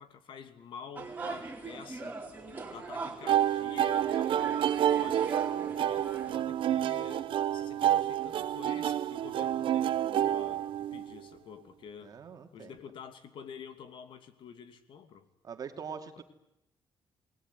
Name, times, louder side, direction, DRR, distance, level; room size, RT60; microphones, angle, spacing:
voice 1, 0.0-2.2 2.7-5.4 5.8-12.1 12.5-15.2 16.2-16.3, left 7 dB, 70° left, 10 dB, 2.7 m, -48 dB
sound 1, 0.9-6.4, right 3 dB, 20° right, 4.0 m, -41 dB
sound 2, 3.3-11.2, right 11 dB, 75° right, 0.9 m, -29 dB
voice 2, 12.0-12.8 15.4-16.2, right 6 dB, 45° right, 6 dB, 2.7 m, -43 dB
28.5 x 20.5 x 9.7 m, 0.87 s
wide cardioid pair, 170°, 9 cm